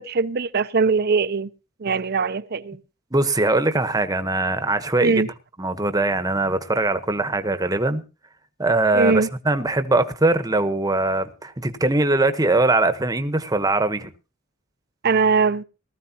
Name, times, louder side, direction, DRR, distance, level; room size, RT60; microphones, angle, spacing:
voice 1, 0.0-1.5 1.8-2.8 5.0-5.3 8.9-9.3 15.0-15.6, right 4 dB, 55° right, 0.7 m, -21 dB
voice 2, 3.1-5.3 5.6-8.0 8.6-14.1, right 2 dB, 20° right, 1.1 m, -21 dB
19.0 x 14.0 x 2.9 m
head